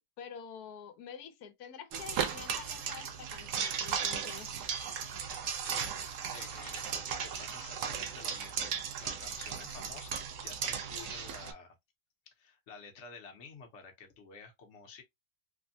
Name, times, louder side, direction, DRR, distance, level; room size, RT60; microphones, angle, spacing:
voice 1, 0.2-4.5, left 7 dB, 90° left, 1.2 m, -47 dB
sound 1, 1.9-11.5, right 7 dB, 65° right, 0.9 m, -36 dB
voice 2, 5.6-11.7 12.4-15.0, left 5 dB, 55° left, 1.1 m, -51 dB
3.4 x 2.1 x 2.6 m
omnidirectional pair, 1.6 m